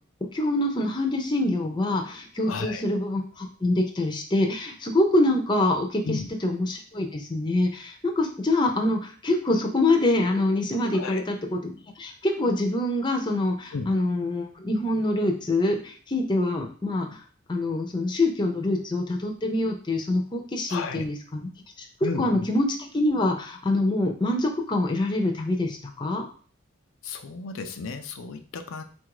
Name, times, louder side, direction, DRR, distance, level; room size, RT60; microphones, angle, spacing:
voice 1, 0.3-6.2 6.4-17.2 17.5-21.5 22.2-26.2, left 2 dB, 20° left, 3 dB, 0.7 m, -25 dB
voice 2, 2.5-2.8 6.0-6.3 10.9-11.2 13.7-13.9 20.7-21.1 22.0-22.5 27.0-28.8, left 4 dB, 80° left, 7 dB, 0.5 m, -33 dB
4.0 x 2.6 x 4.7 m, 0.42 s
head